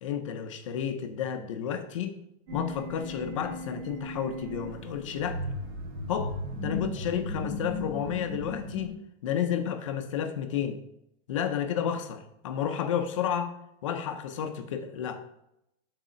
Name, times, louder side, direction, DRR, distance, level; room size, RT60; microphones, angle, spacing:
voice 1, 0.0-2.2 2.5-5.4 6.1-6.4 6.6-10.8 11.3-15.2, left 8 dB, 30° left, 8 dB, 0.4 m, -31 dB
sound 1, 2.5-8.9, left 1 dB, 60° right, 1.7 m, -36 dB
6.3 x 4.0 x 5.5 m, 0.80 s
supercardioid pair, 180°, 35 cm